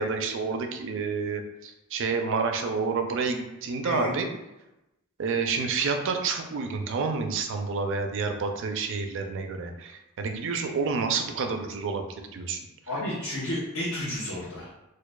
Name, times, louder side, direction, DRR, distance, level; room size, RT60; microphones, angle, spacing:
voice 1, 0.0-4.3 5.2-12.1 12.3-12.6, right 4 dB, 60° right, 5 dB, 0.4 m, -29 dB
voice 2, 3.8-4.1 12.9-14.7, left 1 dB, 75° left, -9 dB, 1.0 m, -31 dB
4.5 x 2.3 x 2.3 m, 0.95 s
head